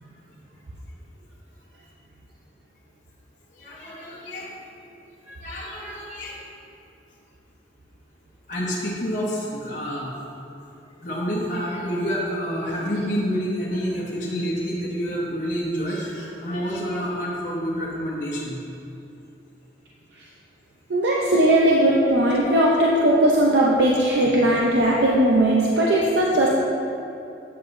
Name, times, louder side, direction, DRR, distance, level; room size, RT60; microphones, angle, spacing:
voice 1, 3.6-4.5 5.3-6.4 8.5-10.1 11.0-18.6, equal, 50° left, -6 dB, 1.0 m, -28 dB
voice 2, 20.9-26.5, right 1 dB, 80° right, -3 dB, 0.6 m, -18 dB
8.6 x 7.6 x 2.6 m, 2.7 s
head